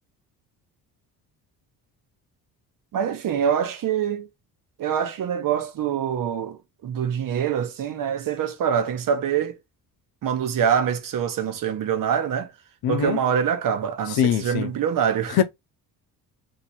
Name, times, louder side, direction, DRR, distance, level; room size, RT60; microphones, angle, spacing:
voice 1, 2.9-4.3 4.8-9.6 10.2-12.5 12.9-15.4, right 8 dB, 55° right, 1.0 m, -25 dB
voice 2, 12.8-13.2 14.1-14.7 15.3-15.4, left 9 dB, 65° left, 0.7 m, -22 dB
2.9 x 2.9 x 4.3 m
supercardioid pair, 75°, 41 cm